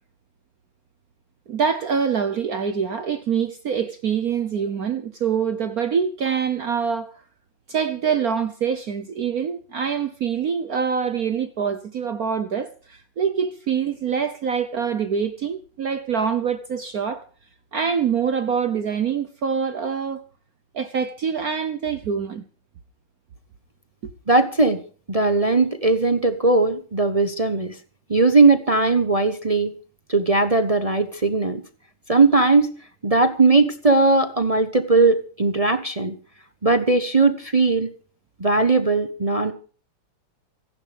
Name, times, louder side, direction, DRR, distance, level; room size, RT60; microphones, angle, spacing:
voice 1, 1.5-7.1 7.7-17.2 17.7-20.2 20.7-22.4, right 7 dB, 55° right, 1.1 m, -25 dB
voice 2, 24.3-24.8 25.1-27.8 28.1-29.7 30.1-31.6 32.1-32.7 33.0-36.1 36.6-37.9 38.4-39.5, right 3 dB, 35° right, 0.5 m, -18 dB
26.5 x 11.0 x 3.5 m
omnidirectional pair, 2.4 m